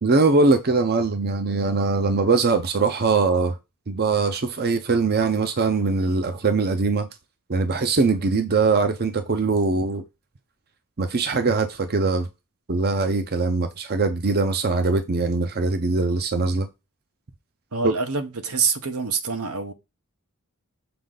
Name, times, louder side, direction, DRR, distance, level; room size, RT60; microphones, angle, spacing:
voice 1, 0.0-3.6 3.9-7.1 7.5-10.0 11.0-12.3 12.7-16.7 17.8-17.9, right 3 dB, 45° right, 0.7 m, -22 dB
voice 2, 17.7-19.7, right 5 dB, 80° right, 1.0 m, -26 dB
6.9 x 4.4 x 3.9 m
head